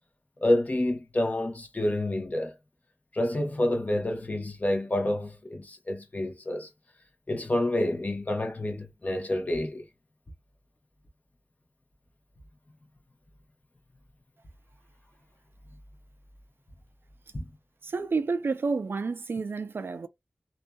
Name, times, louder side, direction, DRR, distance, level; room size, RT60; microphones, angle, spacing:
voice 1, 0.4-2.5 3.1-6.7 7.3-9.8 17.3-17.4, left 1 dB, 40° left, 0.9 m, -28 dB
voice 2, 17.8-20.1, right 4 dB, 70° right, 0.3 m, -30 dB
2.6 x 2.3 x 2.2 m
wide cardioid pair, 50°, 4 cm